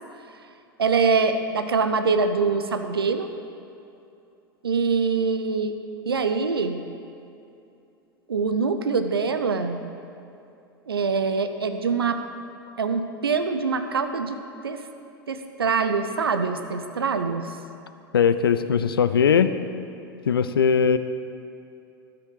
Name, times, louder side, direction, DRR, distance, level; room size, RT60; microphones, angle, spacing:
voice 1, 0.8-3.3 4.6-5.7 6.1-6.8 8.3-9.8 10.9-12.2 12.8-14.4 14.6-14.8 15.3-17.4, right 4 dB, 80° right, 8 dB, 0.6 m, -24 dB
voice 2, 18.1-19.5 20.3-21.0, left 7 dB, 75° left, 12 dB, 0.4 m, -19 dB
13.0 x 6.1 x 4.9 m, 2.7 s
figure-of-eight pair, 85°, 12 cm